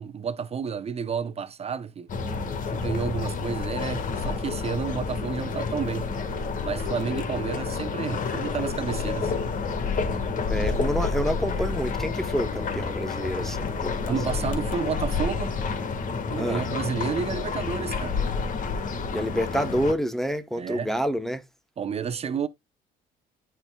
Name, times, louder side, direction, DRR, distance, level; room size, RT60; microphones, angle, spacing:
voice 1, 0.0-2.1 2.7-6.3 6.6-9.3 14.1-15.6 16.3-18.2 20.6-20.9 21.8-22.5, right 6 dB, 35° right, 0.7 m, -31 dB
sound 1, 2.1-19.9, left 4 dB, 50° left, 1.6 m, -29 dB
voice 2, 10.4-14.0 16.4-16.6 19.1-21.4, equal, ahead, 0.9 m, -28 dB
13.0 x 4.4 x 2.3 m
cardioid pair, 110°, 17 cm